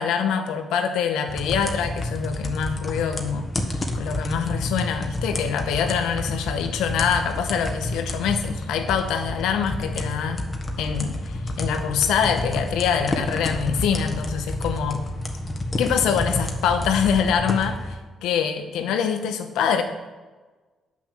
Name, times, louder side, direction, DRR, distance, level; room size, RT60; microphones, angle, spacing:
voice 1, 0.0-3.5 3.9-10.4 10.8-15.0 15.8-19.8, left 7 dB, 90° left, 6 dB, 1.1 m, -24 dB
sound 1, 1.3-17.9, left 1 dB, 30° left, 1.4 m, -29 dB
8.4 x 6.1 x 7.4 m, 1.3 s
cardioid pair, 90°, 0 cm